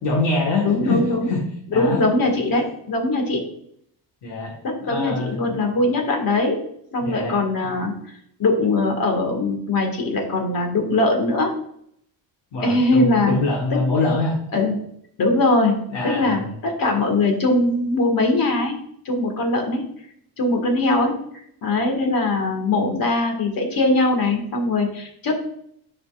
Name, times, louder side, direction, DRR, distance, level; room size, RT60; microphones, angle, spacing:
voice 1, 0.0-1.4 1.7-2.0 4.2-4.5 4.8-5.4 7.0-7.3 12.5-14.4 15.9-16.5, left 2 dB, 75° left, -1 dB, 1.7 m, -24 dB
voice 2, 0.6-1.3 1.8-3.4 4.6-6.6 6.9-7.9 8.4-11.5 12.6-13.4 13.7-13.8 14.5-14.8 15.2-15.8 16.0-18.8 19.1-19.8 20.4-21.2 21.6-25.4, left 2 dB, 50° left, 3 dB, 2.0 m, -21 dB
12.0 x 5.4 x 2.5 m, 0.70 s
cardioid pair, 140°, 43 cm